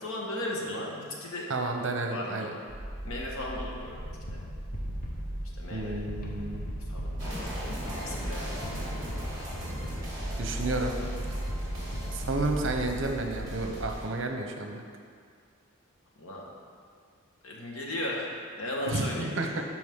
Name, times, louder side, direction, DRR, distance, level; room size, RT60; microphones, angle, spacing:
voice 1, 0.0-1.5 2.1-2.5 3.0-4.0 4.3-4.4 5.6-6.0 6.9-7.3 7.9-8.7 11.8-12.1 16.2-16.4 17.4-19.3, left 1 dB, 85° left, -2 dB, 1.5 m, -36 dB
voice 2, 1.5-2.5 5.7-6.7 10.4-10.9 12.1-14.8 18.9-19.6, right 2 dB, 60° right, 3 dB, 0.8 m, -31 dB
sound 1, 2.7-13.9, right 1 dB, 40° right, 1.6 m, -37 dB
sound 2, 3.8-13.4, equal, 40° left, 0.9 m, -42 dB
sound 3, 7.2-14.0, equal, 20° right, 2.0 m, -39 dB
12.5 x 4.7 x 3.7 m, 2.1 s
head